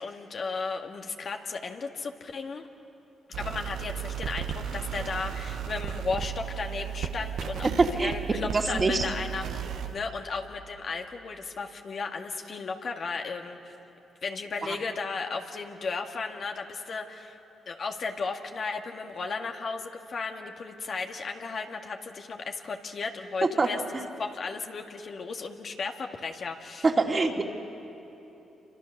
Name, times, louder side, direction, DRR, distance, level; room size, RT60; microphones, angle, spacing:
voice 1, 0.0-2.7 3.4-13.7 14.2-17.4 17.7-26.9, left 4 dB, 55° left, 3 dB, 1.9 m, -35 dB
sound 1, 3.3-10.0, right 9 dB, 75° right, 1.3 m, -35 dB
voice 2, 7.8-8.1 8.5-9.0 14.6-14.8 23.4-23.7 26.8-27.4, right 3 dB, 35° right, 1 dB, 2.6 m, -24 dB
28.0 x 26.0 x 6.7 m, 3.0 s
supercardioid pair, 55°, 0 cm